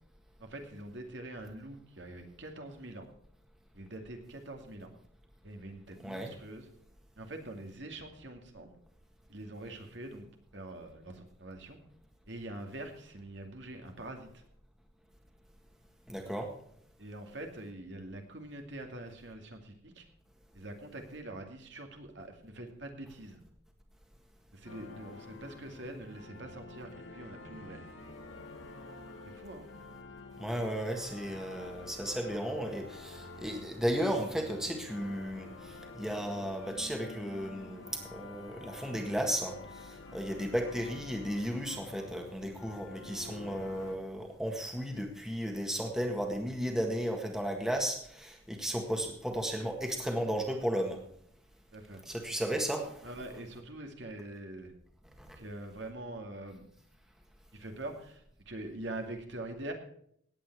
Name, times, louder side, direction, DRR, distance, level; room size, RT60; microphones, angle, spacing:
voice 1, 0.4-3.1 3.7-4.9 5.4-6.7 7.2-8.7 9.3-10.3 10.5-11.8 12.3-14.4 17.0-20.0 20.5-23.4 24.5-27.9 29.2-29.7 40.3-40.4 51.7-52.0 53.0-54.7 55.4-56.7 57.5-59.7, right 1 dB, 65° right, 3 dB, 2.3 m, -44 dB
voice 2, 16.1-16.5 30.4-51.0 52.0-53.1 55.2-55.4, equal, 5° right, 2 dB, 1.7 m, -34 dB
sound 1, 24.6-44.0, left 3 dB, 85° left, 1.9 m, -49 dB
17.5 x 8.7 x 4.7 m, 0.66 s
head